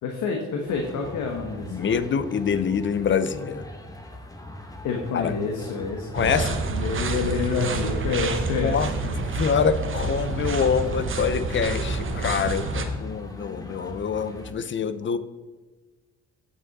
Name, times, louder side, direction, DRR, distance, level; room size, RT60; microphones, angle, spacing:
voice 1, 0.0-1.9 4.8-9.1 12.4-13.1, left 5 dB, 90° left, 2 dB, 1.2 m, -29 dB
sound 1, 0.7-14.5, left 1 dB, 10° left, 1.2 m, -41 dB
voice 2, 1.7-3.7 5.1-5.3 6.1-6.6 8.6-8.9 9.2-15.2, left 6 dB, 40° left, 13 dB, 0.6 m, -25 dB
sound 2, 6.1-12.8, right 3 dB, 40° right, 1.0 m, -28 dB
8.4 x 6.8 x 4.1 m, 1.2 s
cardioid pair, 90°, 30 cm